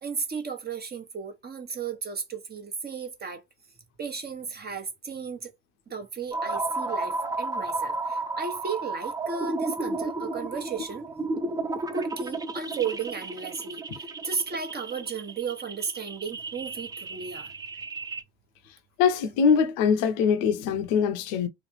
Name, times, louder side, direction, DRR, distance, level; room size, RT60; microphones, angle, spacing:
voice 1, 0.0-3.4 4.0-5.5 5.9-11.1 11.9-17.5, right 5 dB, 30° right, 1.0 m, -34 dB
sound 1, 6.3-18.2, right 3 dB, 10° right, 0.4 m, -33 dB
voice 2, 19.0-21.5, left 6 dB, 65° left, 0.6 m, -23 dB
3.0 x 2.3 x 3.0 m
hypercardioid pair, 55°, 32 cm